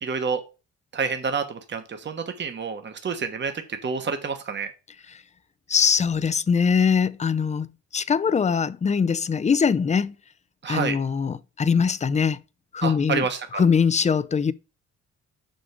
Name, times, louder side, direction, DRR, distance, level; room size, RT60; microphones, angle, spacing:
voice 1, 0.0-0.4 0.9-4.7 10.6-11.0 12.8-13.6, right 5 dB, 35° right, 1.3 m, -28 dB
voice 2, 5.7-10.1 10.7-12.4 12.7-13.2 13.6-14.5, left 6 dB, 25° left, 0.5 m, -22 dB
6.2 x 5.2 x 5.1 m
cardioid pair, 90°, 30 cm